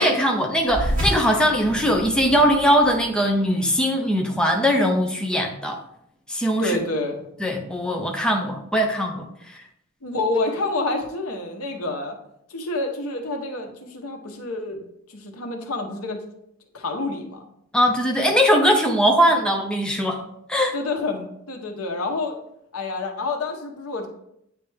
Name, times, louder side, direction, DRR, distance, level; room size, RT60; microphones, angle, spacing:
voice 1, 0.0-5.8 6.3-6.8 7.4-9.6 17.7-20.2 20.5-20.7, equal, 5° left, 1 dB, 0.5 m, -20 dB
sound 1, 0.6-5.5, equal, 35° right, 2.2 m, -31 dB
voice 2, 6.6-7.2 10.0-12.2 12.5-14.8 15.1-16.2 16.7-17.5 20.7-22.4 22.7-24.1, left 2 dB, 90° left, 3 dB, 1.0 m, -28 dB
8.6 x 3.3 x 3.3 m, 0.75 s
head